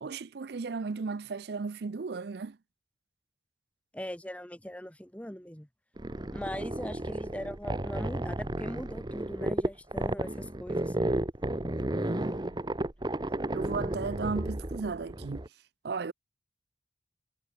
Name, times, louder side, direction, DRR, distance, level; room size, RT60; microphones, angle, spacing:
voice 1, 0.0-2.6 11.9-12.7 13.5-15.5 15.8-16.1, right 4 dB, 60° right, 0.5 m, -35 dB
voice 2, 3.9-5.7 6.3-10.9, equal, 10° left, 2.2 m, -40 dB
sound 1, 6.0-15.5, right 1 dB, 25° right, 0.9 m, -33 dB
head